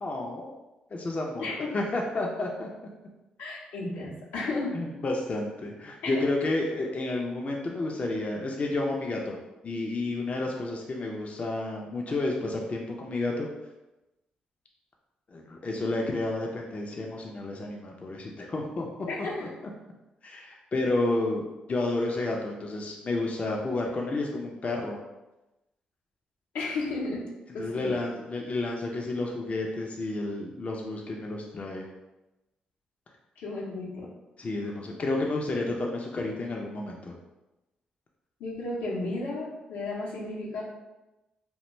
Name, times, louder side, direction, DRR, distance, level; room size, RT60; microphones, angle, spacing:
voice 1, 0.0-0.5 0.9-2.7 4.7-9.4 9.6-13.5 15.3-18.9 19.2-19.5 20.2-25.0 27.6-31.8 34.4-37.1, left 2 dB, 40° left, 0 dB, 0.4 m, -31 dB
voice 2, 3.4-4.8 6.0-6.2 16.0-16.1 19.1-19.5 26.5-27.2 27.5-27.9 33.4-34.1 38.4-40.6, left 2 dB, 85° left, -5 dB, 0.7 m, -33 dB
2.4 x 2.1 x 3.0 m, 1.0 s
supercardioid pair, 50°, 3 cm